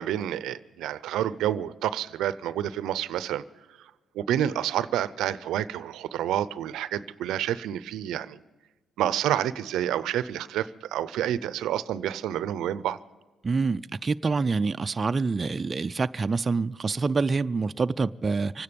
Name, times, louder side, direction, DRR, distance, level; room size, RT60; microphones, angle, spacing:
voice 1, 0.0-3.4 4.2-8.4 9.0-13.0, right 11 dB, 85° right, 16 dB, 0.5 m, -29 dB
voice 2, 13.4-18.6, right 4 dB, 30° right, 10 dB, 0.4 m, -26 dB
25.0 x 9.7 x 5.2 m, 1.2 s
cardioid pair, 90°, 0 cm